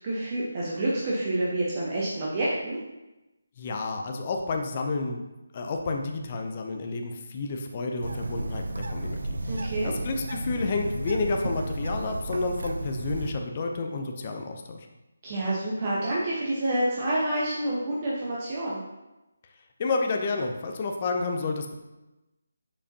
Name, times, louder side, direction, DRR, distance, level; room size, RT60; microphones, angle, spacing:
voice 1, 0.0-2.8 9.5-9.9 15.2-18.8, right 1 dB, 35° right, -6 dB, 1.0 m, -28 dB
voice 2, 3.6-5.2 5.5-9.4 9.8-14.9 19.8-21.7, left 3 dB, 35° left, 3 dB, 0.6 m, -30 dB
Bird, 8.0-13.3, right 2 dB, 75° right, 0.5 m, -33 dB
6.8 x 4.9 x 2.8 m, 1.0 s
figure-of-eight pair, 155°, 0 cm